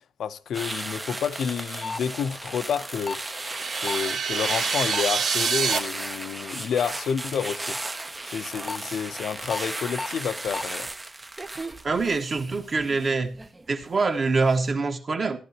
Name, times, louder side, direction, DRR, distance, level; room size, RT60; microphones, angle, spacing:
voice 1, 0.2-3.2 3.8-7.8 8.3-10.9, left 7 dB, 70° left, 0.7 m, -29 dB
sound 1, 0.5-13.9 14.2-14.6, right 2 dB, 15° right, 0.7 m, -35 dB
sound 2, 1.8-2.0 3.0-3.2 3.9-4.0 4.9-5.1 5.7-5.8 8.4-8.8 9.5-9.6 9.9-10.1 10.5-10.6, left 4 dB, 20° left, 0.6 m, -31 dB
sound 3, 3.0-5.8, right 6 dB, 55° right, 1.2 m, -27 dB
voice 2, 11.8-13.3 13.7-15.4, right 4 dB, 35° right, 1.5 m, -24 dB
14.5 x 11.5 x 2.9 m
wide cardioid pair, 155°, 0 cm